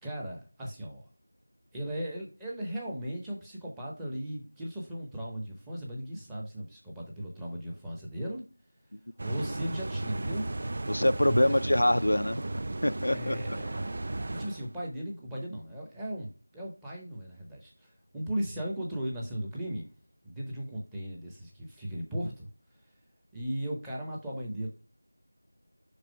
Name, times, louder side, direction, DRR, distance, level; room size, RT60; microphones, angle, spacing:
voice 1, 0.0-1.1 1.7-8.4 9.2-10.5 11.3-11.7 13.1-13.9 14.3-19.9 20.2-22.5 23.3-24.7, equal, 5° right, 0.7 m, -37 dB
sound 1, 9.2-14.7, right 2 dB, 30° right, 0.3 m, -35 dB
voice 2, 10.9-12.4 12.8-13.6, left 1 dB, 75° left, 0.3 m, -25 dB
5.4 x 4.9 x 4.5 m
figure-of-eight pair, 175°, 0 cm